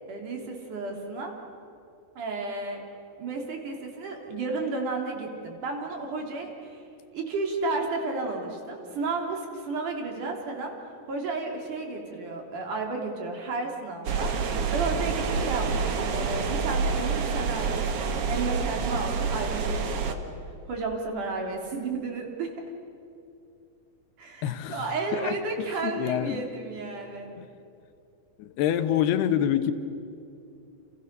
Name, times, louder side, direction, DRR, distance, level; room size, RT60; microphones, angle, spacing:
voice 1, 0.1-1.3 2.2-2.8 3.2-6.8 7.1-10.7 11.1-20.3 20.7-22.5 24.2-27.3, right 3 dB, 50° right, 2 dB, 4.4 m, -32 dB
sound 1, 14.0-20.1, right 5 dB, 65° right, 1.4 m, -27 dB
voice 2, 24.4-24.8 25.1-25.3 25.8-26.4 27.4-27.5 28.4-29.7, left 10 dB, 75° left, 9 dB, 3.0 m, -26 dB
30.0 x 29.0 x 6.8 m, 2.7 s
omnidirectional pair, 4.9 m